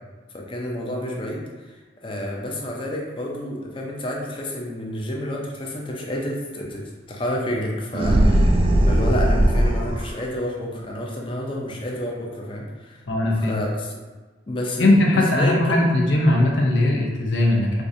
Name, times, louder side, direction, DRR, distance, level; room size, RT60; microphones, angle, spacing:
voice 1, 0.3-1.7 2.0-8.5 8.9-13.0 13.3-14.0 14.5-15.9, equal, 25° left, -2 dB, 0.5 m, -29 dB
sound 1, 7.9-10.1, right 1 dB, 30° right, 0.3 m, -18 dB
voice 2, 13.1-13.5 14.8-17.8, left 1 dB, 75° left, -1 dB, 0.7 m, -19 dB
4.5 x 2.6 x 2.6 m, 1.3 s
head